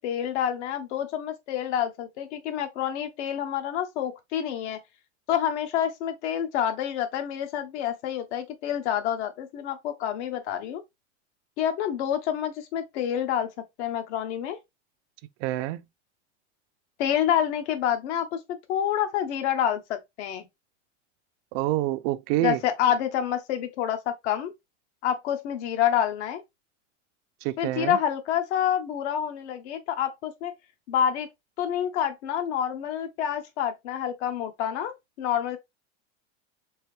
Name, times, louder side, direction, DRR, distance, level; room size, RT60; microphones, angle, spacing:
voice 1, 0.0-4.8 5.3-10.8 11.6-13.5 13.8-14.6 17.0-18.4 18.7-20.5 22.4-24.5 25.0-26.4 27.6-30.5 30.9-31.3 31.6-35.6, left 10 dB, 70° left, 1.3 m, -28 dB
voice 2, 15.4-15.8 21.5-22.6 27.4-28.0, right 15 dB, 55° right, 0.5 m, -27 dB
4.6 x 2.9 x 3.2 m
supercardioid pair, 120°, 35 cm